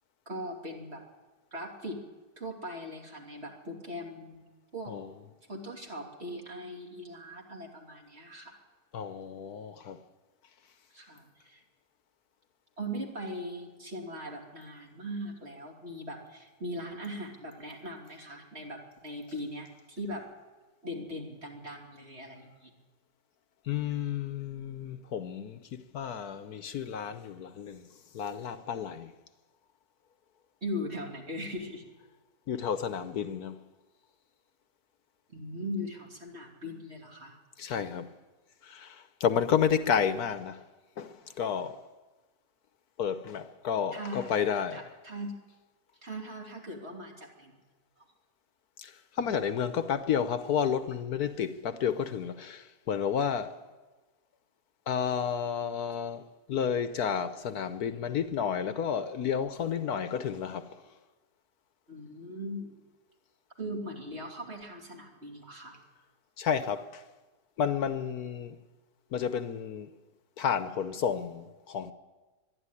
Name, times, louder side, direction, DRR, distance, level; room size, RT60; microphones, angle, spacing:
voice 1, 0.3-1.0 1.5-2.0 2.4-4.4 4.7-4.9 5.5-8.6 10.9-11.6 12.8-20.3 20.8-22.7 30.6-31.8 35.3-37.3 43.9-44.3 44.7-45.4 46.0-47.6 61.9-62.7 63.6-65.8, equal, 40° right, 3.3 m, -40 dB
voice 2, 8.9-10.0 23.7-27.9 28.1-29.1 32.5-33.6 37.6-38.1 38.6-40.6 41.0-41.8 43.0-44.8 48.8-53.6 54.9-60.8 66.4-67.0 67.6-68.6 69.1-69.9 70.4-71.9, left 7 dB, 70° left, 1.3 m, -31 dB
22.5 x 12.0 x 9.9 m
omnidirectional pair, 1.7 m